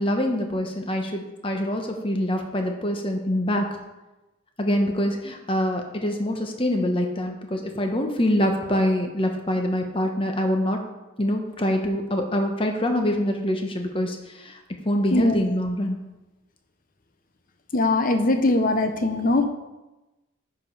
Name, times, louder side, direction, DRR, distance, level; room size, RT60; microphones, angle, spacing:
voice 1, 0.0-3.6 4.6-10.8 11.2-14.6 14.8-16.0, left 1 dB, 25° left, 4 dB, 1.0 m, -25 dB
voice 2, 17.7-19.5, left 2 dB, 40° left, 7 dB, 0.8 m, -21 dB
9.7 x 5.0 x 5.5 m, 1.0 s
head